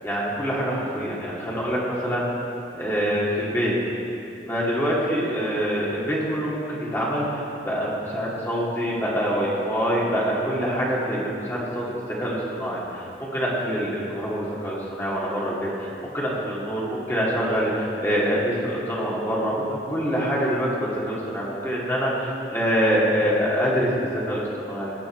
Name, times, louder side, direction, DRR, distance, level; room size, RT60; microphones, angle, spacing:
voice 1, 0.0-2.3 2.7-3.8 4.4-24.9, equal, 15° left, -6 dB, 2.5 m, -25 dB
19.5 x 8.7 x 4.6 m, 2.8 s
head